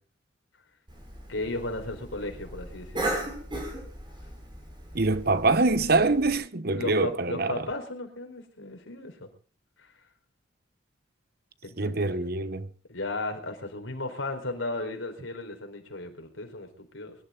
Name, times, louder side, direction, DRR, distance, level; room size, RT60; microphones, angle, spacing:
Cough, 0.9-6.3, right 1 dB, 25° right, 7.3 m, -37 dB
voice 1, 1.3-3.2 6.7-9.3 9.8-9.9 11.6-12.2 12.9-17.2, left 2 dB, 85° left, 4.6 m, -35 dB
voice 2, 4.9-7.6 11.8-12.7, right 3 dB, 50° right, 1.1 m, -24 dB
24.0 x 12.5 x 4.0 m
head